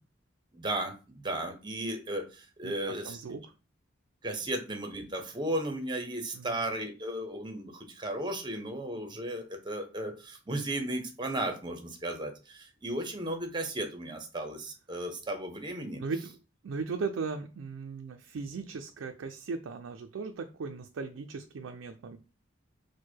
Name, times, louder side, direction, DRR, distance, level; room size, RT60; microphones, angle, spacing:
voice 1, 0.5-3.2 4.2-16.0, right 1 dB, 25° right, 5 dB, 0.7 m, -35 dB
voice 2, 2.6-3.5 6.3-6.6 16.0-16.3 16.6-22.2, right 4 dB, 90° right, 5 dB, 0.4 m, -37 dB
4.5 x 2.2 x 4.5 m, 0.33 s
head